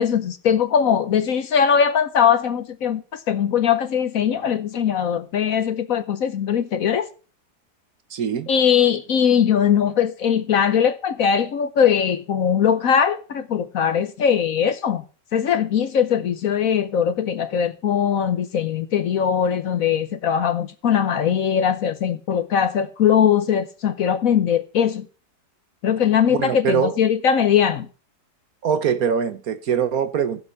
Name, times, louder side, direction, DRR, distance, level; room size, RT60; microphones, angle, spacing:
voice 1, 0.0-7.1 8.5-15.0 15.3-25.1 25.8-27.9, left 8 dB, 60° left, 1.1 m, -20 dB
voice 2, 8.1-8.5 26.3-27.0 28.6-30.4, right 7 dB, 60° right, 1.3 m, -23 dB
15.0 x 7.6 x 5.7 m
omnidirectional pair, 1.9 m